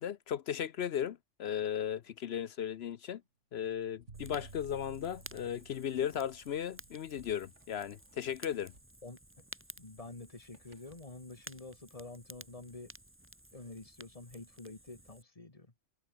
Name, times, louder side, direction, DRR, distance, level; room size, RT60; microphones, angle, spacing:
voice 1, 0.0-3.2 3.5-8.7, left 9 dB, 65° left, 0.9 m, -36 dB
sound 1, 1.7-11.1, right 1 dB, 75° right, 8.1 m, -70 dB
Fire, 4.1-15.2, right 1 dB, 10° right, 1.9 m, -54 dB
sound 2, 4.1-8.2, right 4 dB, 60° right, 2.6 m, -54 dB
voice 2, 9.0-9.4 9.8-12.9 13.5-15.7, left 2 dB, 30° left, 2.6 m, -48 dB
omnidirectional pair, 1.2 m